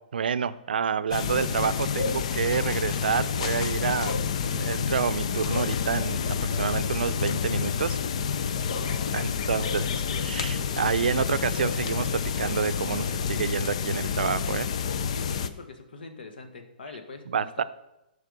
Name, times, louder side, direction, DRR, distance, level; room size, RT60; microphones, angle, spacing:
voice 1, 0.1-8.0 9.1-9.8 10.2-14.7 17.3-17.6, right 7 dB, 80° right, 14 dB, 0.5 m, -28 dB
sound 1, 1.1-15.5, left 6 dB, 40° left, 0.5 m, -28 dB
voice 2, 8.7-10.0 15.1-17.6, left 3 dB, 85° left, 6 dB, 1.6 m, -44 dB
sound 2, 9.4-13.9, right 4 dB, 40° right, 3.5 m, -48 dB
12.5 x 4.9 x 5.3 m, 0.91 s
hypercardioid pair, 175°, 5 cm